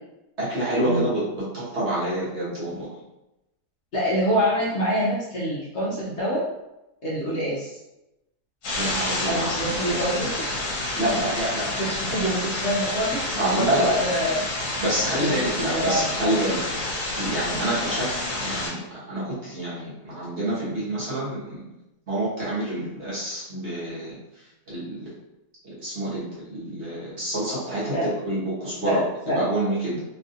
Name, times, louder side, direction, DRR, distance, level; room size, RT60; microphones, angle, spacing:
voice 1, 0.4-2.9 8.8-10.1 11.0-11.7 13.4-13.9 14.8-16.6 17.1-18.1 18.4-18.8 19.1-21.6 22.1-24.2 24.7-25.1 25.6-29.0 29.3-30.0, right 1 dB, 45° right, -9 dB, 1.3 m, -27 dB
voice 2, 3.9-6.5 7.0-7.7 9.3-10.5 11.1-14.4 15.1-16.4 27.9-28.1 28.8-29.4, equal, 50° left, -8 dB, 1.0 m, -26 dB
sound 1, 8.6-18.7, left 2 dB, 70° left, 1.3 m, -29 dB
3.2 x 2.4 x 2.7 m, 0.93 s
omnidirectional pair, 1.7 m